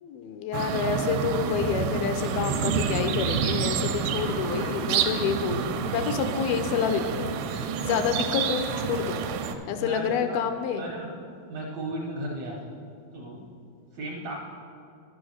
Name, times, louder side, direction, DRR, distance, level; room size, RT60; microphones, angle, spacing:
voice 1, 0.0-9.2 9.7-10.9, left 7 dB, 80° left, 7 dB, 2.4 m, -28 dB
sound 1, 0.5-9.5, right 7 dB, 90° right, 2.5 m, -29 dB
voice 2, 9.8-10.4 10.8-11.1 11.5-12.7 13.1-13.4 13.9-14.3, right 1 dB, 75° right, -3 dB, 1.6 m, -35 dB
11.0 x 6.3 x 6.3 m, 2.6 s
omnidirectional pair, 4.4 m